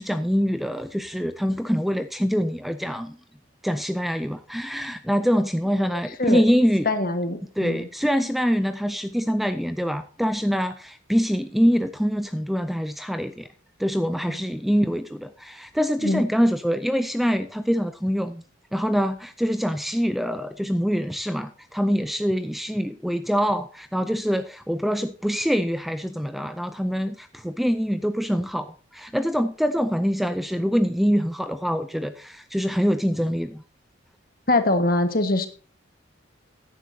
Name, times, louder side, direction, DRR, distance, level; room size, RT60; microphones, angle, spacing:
voice 1, 0.0-3.2 3.6-6.9 7.6-13.5 13.8-18.4 18.7-33.6, equal, ahead, 10 dB, 0.4 m, -24 dB
voice 2, 5.9-6.4 6.8-7.9 14.3-14.5 16.0-16.2 34.5-35.5, left 2 dB, 45° left, 8 dB, 1.5 m, -23 dB
15.5 x 10.0 x 2.7 m, 0.38 s
head